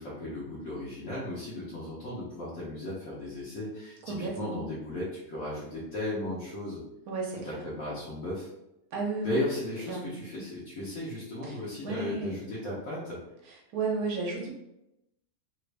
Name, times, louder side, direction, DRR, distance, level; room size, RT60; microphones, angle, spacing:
voice 1, 0.0-6.8 7.4-8.5 9.2-13.2, left 1 dB, 60° left, -8 dB, 1.2 m, -35 dB
voice 2, 4.1-4.6 7.1-7.6 8.9-9.4 9.9-10.1 11.4-12.4 13.4-14.5, right 3 dB, 80° right, -1 dB, 1.1 m, -33 dB
3.1 x 2.5 x 3.2 m, 0.88 s
omnidirectional pair, 1.5 m